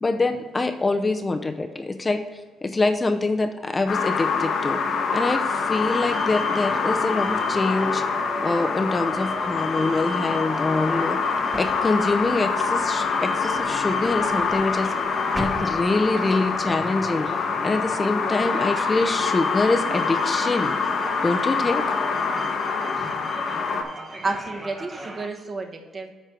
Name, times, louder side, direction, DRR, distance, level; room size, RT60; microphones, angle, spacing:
voice 1, 0.0-4.8 5.1-8.0 8.4-11.2 11.5-14.9 15.4-17.3 17.6-20.8 21.2-21.8, left 3 dB, 25° left, 6 dB, 0.6 m, -25 dB
sound 1, 3.9-23.8, left 5 dB, 60° left, 1.1 m, -25 dB
sound 2, 5.7-25.3, right 1 dB, 20° right, 1.0 m, -38 dB
sound 3, 9.3-16.7, equal, ahead, 1.1 m, -42 dB
voice 2, 24.2-26.1, right 3 dB, 40° right, 4 dB, 1.3 m, -31 dB
8.3 x 4.4 x 6.1 m, 1.4 s
cardioid pair, 90°, 0 cm